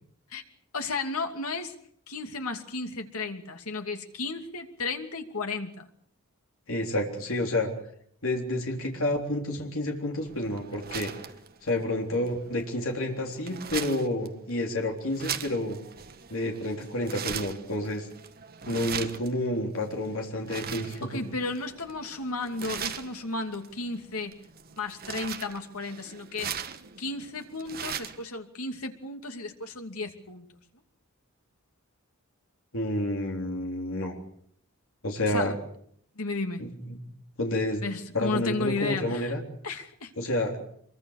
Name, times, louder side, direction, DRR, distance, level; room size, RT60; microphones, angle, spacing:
voice 1, 0.7-1.8 2.1-5.9 21.0-24.4 24.7-26.6 27.0-30.6 35.3-35.5 36.2-36.7 37.8-39.3 39.6-40.1, left 3 dB, 85° left, 5 dB, 2.7 m, -34 dB
voice 2, 6.7-7.7 8.2-11.1 11.6-15.8 16.3-18.1 18.7-21.2 32.7-34.2 35.0-35.5 36.9-37.0 37.4-37.8 38.1-39.4 40.2-40.6, left 1 dB, 65° left, 1 dB, 3.7 m, -29 dB
sound 1, 10.2-28.3, right 8 dB, 45° right, 1.5 m, -40 dB
25.0 x 23.0 x 6.6 m, 0.65 s
head